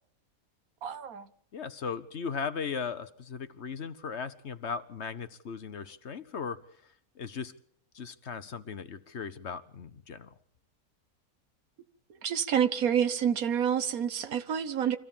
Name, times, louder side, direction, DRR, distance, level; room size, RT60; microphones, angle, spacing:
voice 1, 0.8-1.3 12.2-15.0, right 8 dB, 80° right, 1.6 m, -28 dB
voice 2, 1.5-6.6 7.2-7.5 7.9-10.3, left 6 dB, 55° left, 1.2 m, -37 dB
25.5 x 16.0 x 7.3 m
omnidirectional pair, 1.5 m